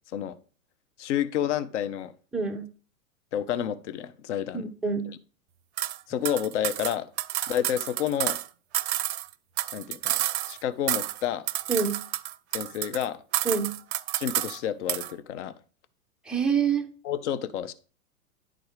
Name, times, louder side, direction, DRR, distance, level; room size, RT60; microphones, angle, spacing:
voice 1, 1.0-2.1 3.3-4.7 6.1-7.1 7.5-8.4 9.7-11.4 12.5-13.2 14.1-15.6 17.0-17.7, left 10 dB, 55° left, 13 dB, 0.8 m, -30 dB
voice 2, 2.3-2.6 4.5-5.1 11.7-12.0 13.5-13.7 16.3-16.8, right 6 dB, ahead, 2 dB, 0.4 m, -26 dB
sound 1, 5.8-6.0 6.2-8.5 8.7-10.6 10.9-11.2 11.5-13.0 13.3-14.6 14.9-15.1, right 14 dB, 50° right, 0.5 m, -30 dB
10.5 x 3.9 x 4.8 m, 0.39 s
figure-of-eight pair, 105°, 43 cm